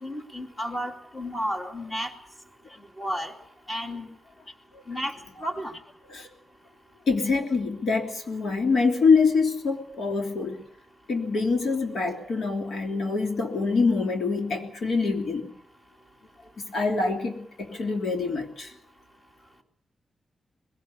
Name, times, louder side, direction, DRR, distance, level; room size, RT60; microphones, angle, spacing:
voice 1, 0.0-2.1 3.0-3.3 3.7-4.1 4.9-5.1 5.4-5.7, equal, 15° left, 4 dB, 2.5 m, -32 dB
voice 2, 7.1-10.6 11.1-15.5 16.7-18.7, left 4 dB, 60° left, 4 dB, 3.1 m, -25 dB
21.0 x 17.5 x 8.3 m, 0.73 s
wide cardioid pair, 175°, 0 cm